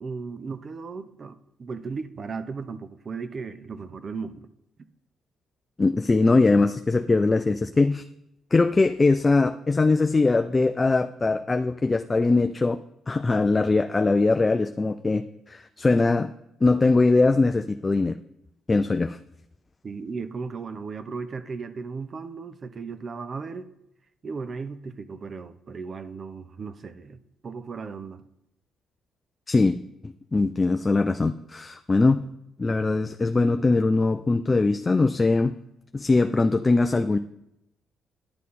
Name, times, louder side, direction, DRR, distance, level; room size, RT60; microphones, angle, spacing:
voice 1, 0.0-4.5 19.8-23.7 24.2-28.2, right 4 dB, 45° right, 0.6 m, -36 dB
voice 2, 5.8-8.0 8.5-12.8 13.1-16.3 16.6-18.2 18.7-19.2 29.5-29.8 30.0-32.2 32.6-35.5 35.9-37.2, left 3 dB, 25° left, 0.3 m, -21 dB
10.5 x 7.4 x 4.2 m
cardioid pair, 90°, 0 cm